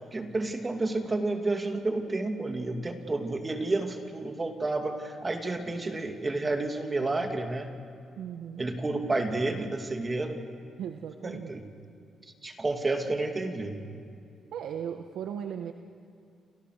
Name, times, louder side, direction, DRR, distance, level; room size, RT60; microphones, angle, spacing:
voice 1, 0.1-7.7 8.6-10.4 11.2-11.6 12.2-13.8, right 2 dB, 20° right, 4 dB, 2.6 m, -30 dB
voice 2, 8.2-8.7 10.8-11.5 14.5-15.7, right 8 dB, 85° right, 5 dB, 1.2 m, -37 dB
29.0 x 28.0 x 6.7 m, 2.4 s
cardioid pair, 120°, 0 cm